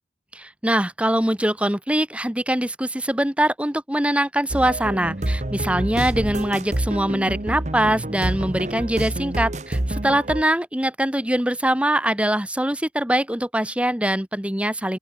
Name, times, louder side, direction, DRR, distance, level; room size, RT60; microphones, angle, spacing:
voice 1, 0.3-15.0, right 1 dB, 5° right, 1.3 m, -23 dB
sound 1, 4.5-10.4, right 1 dB, 40° right, 1.2 m, -27 dB
open air
head